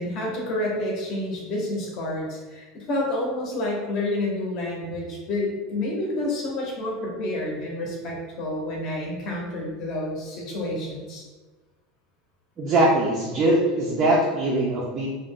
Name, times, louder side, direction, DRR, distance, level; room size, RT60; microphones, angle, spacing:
voice 1, 0.0-11.2, left 1 dB, 35° left, -2 dB, 0.7 m, -29 dB
voice 2, 12.6-15.1, right 1 dB, 25° right, -4 dB, 0.4 m, -21 dB
2.4 x 2.1 x 3.4 m, 1.3 s
supercardioid pair, 170°, 0 cm